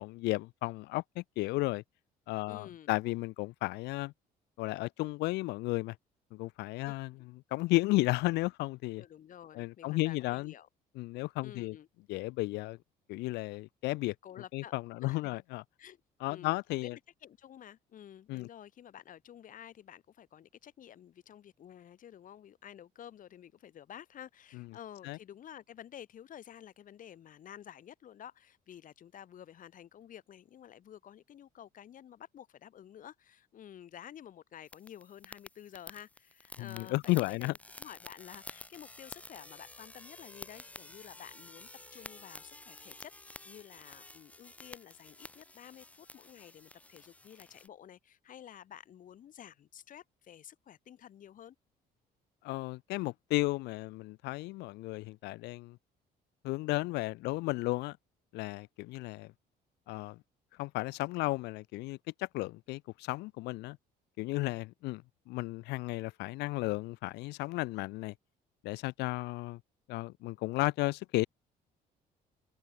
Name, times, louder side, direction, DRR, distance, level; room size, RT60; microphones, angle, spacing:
voice 1, 0.0-1.8 2.3-4.1 4.6-6.0 6.3-7.2 7.5-9.0 9.5-10.5 11.0-11.8 12.1-12.8 13.1-14.1 14.5-15.6 16.2-17.0 18.3-18.5 24.5-24.6 25.0-25.2 36.6-37.5 52.4-55.8 56.4-58.0 58.3-59.3 59.9-60.2 60.6-63.8 64.2-68.1 68.6-69.6 69.9-71.2, left 21 dB, 85° left, 0.5 m, -34 dB
voice 2, 2.5-3.0 6.8-6.9 9.0-10.7 11.4-11.9 14.2-14.7 15.0-15.4 15.8-16.0 16.3-51.6, left 10 dB, 50° left, 2.2 m, -51 dB
sound 1, 34.7-47.7, left 2 dB, 10° left, 0.6 m, -51 dB
cardioid pair, 110°, 17 cm